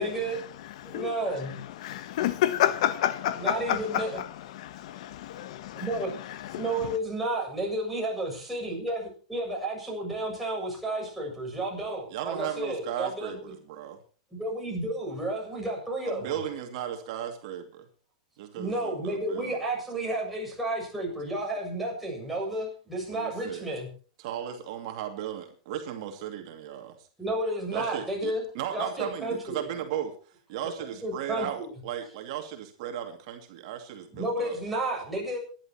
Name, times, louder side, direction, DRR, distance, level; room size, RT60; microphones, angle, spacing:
voice 1, 0.0-0.4 0.8-1.6 3.4-4.2 5.8-6.1 6.5-13.4 14.3-16.4 18.6-23.9 27.2-28.5 28.7-29.6 30.8-31.7 34.1-35.4, right 1 dB, ahead, 7.6 m, -32 dB
voice 2, 1.8-4.0 4.5-5.8 6.5-6.6, left 12 dB, 60° left, 1.1 m, -28 dB
voice 3, 12.1-14.0 16.0-17.8 18.4-19.6 23.1-23.7 24.2-27.0 27.7-30.2 30.5-34.6, right 10 dB, 55° right, 2.4 m, -36 dB
27.5 x 11.0 x 3.0 m
supercardioid pair, 145°, 4 cm